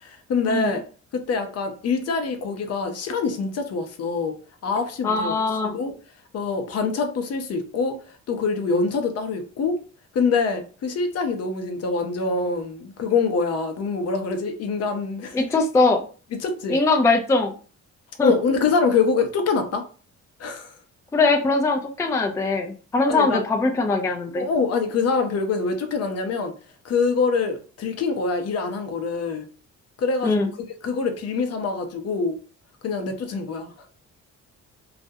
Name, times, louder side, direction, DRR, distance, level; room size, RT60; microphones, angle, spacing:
voice 1, 0.0-0.8 1.1-4.4 4.6-5.4 5.6-5.9 6.3-8.0 8.3-9.8 10.1-15.4 16.3-16.8 18.2-19.8 20.4-20.8 23.1-23.4 24.3-26.5 26.8-29.5 30.0-30.5 30.8-32.4 32.8-33.7, left 4 dB, 55° left, 0.6 m, -25 dB
voice 2, 5.0-5.7 15.3-16.0 16.7-17.5 18.2-18.3 21.1-24.4 30.2-30.5, left 3 dB, 10° left, 0.3 m, -21 dB
2.3 x 2.0 x 2.6 m
cardioid pair, 90°, 30 cm